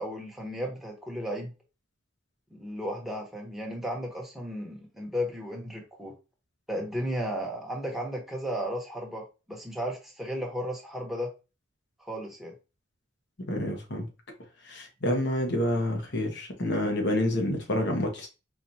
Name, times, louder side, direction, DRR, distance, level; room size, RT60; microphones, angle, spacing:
voice 1, 0.0-1.5 2.5-6.1 6.7-11.3 12.1-12.5, equal, ahead, 1.1 m, -34 dB
voice 2, 13.5-14.1 14.7-18.3, left 1 dB, 60° left, 1.1 m, -28 dB
4.6 x 2.5 x 2.8 m
head